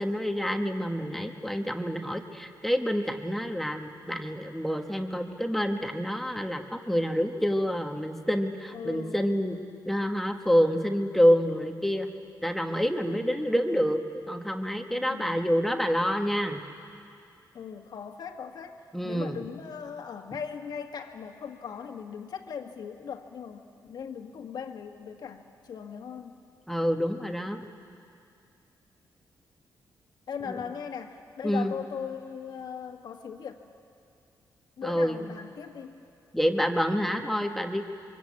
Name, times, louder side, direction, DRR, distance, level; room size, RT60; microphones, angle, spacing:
voice 1, 0.0-9.6 9.8-12.1 12.4-14.0 14.3-16.6 18.9-19.4 26.7-27.6 30.5-30.6 31.4-31.7 34.8-35.2 36.3-37.8, equal, 5° left, 4 dB, 1.2 m, -27 dB
voice 2, 8.7-9.4 13.1-14.0 14.9-15.5 17.5-26.3 30.3-33.6 34.8-36.0, left 7 dB, 65° left, 4 dB, 1.8 m, -39 dB
26.0 x 24.0 x 8.5 m, 2.5 s
wide cardioid pair, 135°, 7 cm